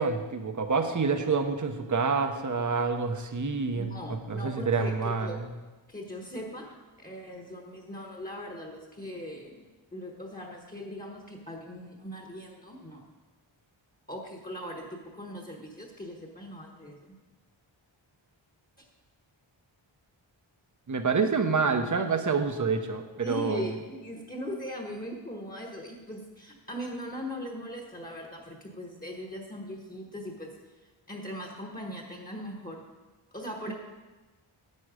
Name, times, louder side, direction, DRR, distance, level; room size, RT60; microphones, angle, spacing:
voice 1, 0.0-5.5 20.9-23.6 33.7-33.8, right 4 dB, 40° right, 7 dB, 0.9 m, -28 dB
voice 2, 3.8-5.4 5.9-9.6 9.9-13.0 14.1-17.1 23.2-30.5 30.8-32.8 33.3-33.7, equal, 20° left, 1 dB, 1.3 m, -40 dB
11.0 x 7.9 x 5.0 m, 1.2 s
wide cardioid pair, 115°, 48 cm